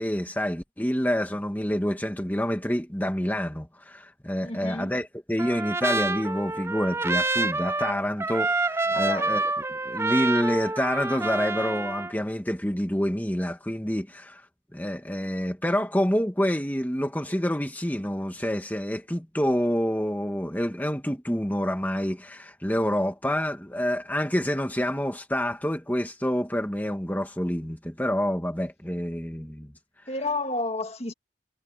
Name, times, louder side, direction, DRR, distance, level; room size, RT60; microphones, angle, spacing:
voice 1, 0.0-9.4 9.9-14.4 14.7-29.7, equal, 10° left, 1.8 m, -27 dB
voice 2, 4.4-4.9 8.9-9.4 30.1-31.1, left 2 dB, 30° left, 2.1 m, -31 dB
Trumpet, 5.4-12.1, right 3 dB, 15° right, 0.5 m, -28 dB
head